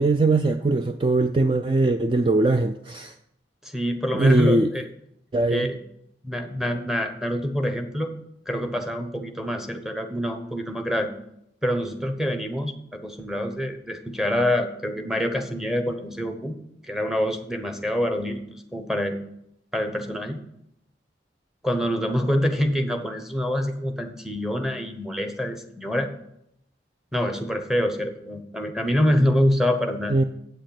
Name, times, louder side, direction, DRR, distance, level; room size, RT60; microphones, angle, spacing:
voice 1, 0.0-3.1 4.1-4.7 5.3-5.7 30.1-30.2, right 2 dB, 30° right, 7 dB, 0.4 m, -21 dB
voice 2, 3.6-4.9 5.5-5.8 6.2-8.1 8.5-11.1 11.6-16.5 16.9-19.2 19.7-20.4 21.6-26.1 27.1-30.2, equal, 5° right, 5 dB, 0.9 m, -26 dB
8.2 x 6.4 x 8.0 m, 0.77 s
head